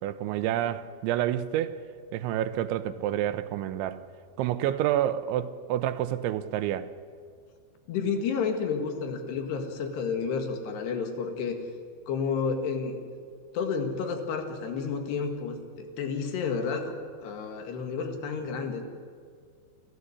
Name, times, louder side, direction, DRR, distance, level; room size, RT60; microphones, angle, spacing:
voice 1, 0.0-1.8 2.1-4.1 4.4-6.9, right 12 dB, 85° right, 3.2 m, -28 dB
voice 2, 7.9-11.6 12.1-13.0 13.5-16.9 17.2-18.8, left 5 dB, 70° left, 3.8 m, -31 dB
29.0 x 13.0 x 9.8 m
omnidirectional pair, 5.3 m